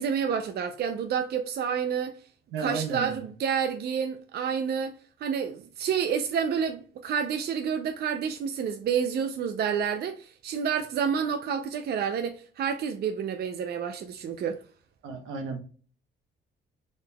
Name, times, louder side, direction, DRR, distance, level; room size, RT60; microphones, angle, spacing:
voice 1, 0.0-2.1 2.6-5.0 5.2-14.6, right 7 dB, 55° right, 0.4 m, -29 dB
voice 2, 2.5-3.3 15.0-15.6, right 5 dB, 80° right, 0.9 m, -33 dB
3.9 x 3.4 x 2.2 m
cardioid pair, 90°, 20 cm